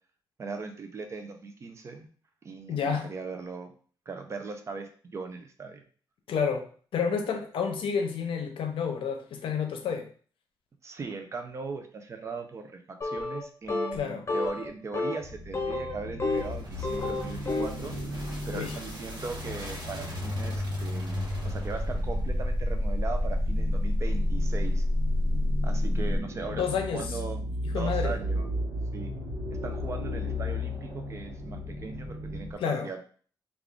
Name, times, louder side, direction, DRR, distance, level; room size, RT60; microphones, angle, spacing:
voice 1, 0.4-2.1 2.4-3.7 4.1-5.8 10.8-24.8 25.6-27.4 27.7-28.5 28.9-29.1 29.6-33.1, right 4 dB, 35° right, 6 dB, 0.4 m, -39 dB
voice 2, 2.7-3.0 6.3-10.1 13.9-14.3 18.5-18.7 26.5-27.2 27.7-28.1 32.6-32.9, left 6 dB, 90° left, 5 dB, 0.6 m, -30 dB
sound 1, 13.0-13.4 13.7-14.0 14.3-14.7 14.9-15.2 15.5-16.5 16.8-17.8, left 2 dB, 30° left, 0.6 m, -30 dB
sound 2, 15.2-32.5, left 1 dB, 80° right, 1.0 m, -35 dB
sound 3, 16.3-26.2, left 1 dB, 55° right, 0.9 m, -30 dB
3.5 x 2.4 x 3.5 m, 0.43 s
wide cardioid pair, 180°, 9 cm